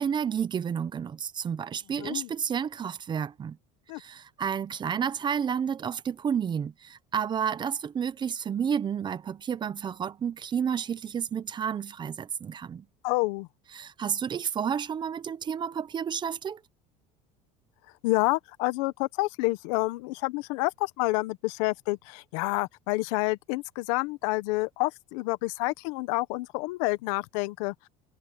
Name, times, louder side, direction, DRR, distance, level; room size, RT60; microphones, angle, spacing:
voice 1, 0.0-3.6 4.0-12.8 13.7-16.6, right 7 dB, 25° right, 0.9 m, -31 dB
voice 2, 2.0-2.3 3.9-4.0 13.0-13.5 18.0-27.7, left 22 dB, 80° left, 1.2 m, -28 dB
cardioid pair, 135°, 17 cm